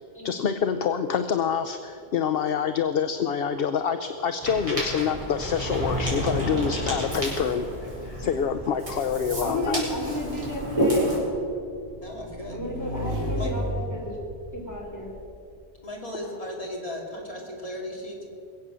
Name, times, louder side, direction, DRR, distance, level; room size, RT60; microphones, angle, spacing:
voice 1, 0.2-7.7 8.2-9.8, left 7 dB, 65° left, 9 dB, 0.8 m, -26 dB
Ocean, 4.4-11.2, equal, 30° right, 4.7 m, -29 dB
Motorcycle / Engine, 8.7-15.3, right 1 dB, 75° right, 3.7 m, -35 dB
voice 2, 9.4-11.1 12.5-13.6 13.9-14.2 14.5-15.1, equal, 15° left, -3 dB, 3.8 m, -32 dB
voice 3, 12.0-12.6 13.4-13.5 15.8-18.2, equal, 35° left, -1 dB, 2.6 m, -36 dB
21.5 x 8.0 x 7.5 m, 2.5 s
omnidirectional pair, 1.1 m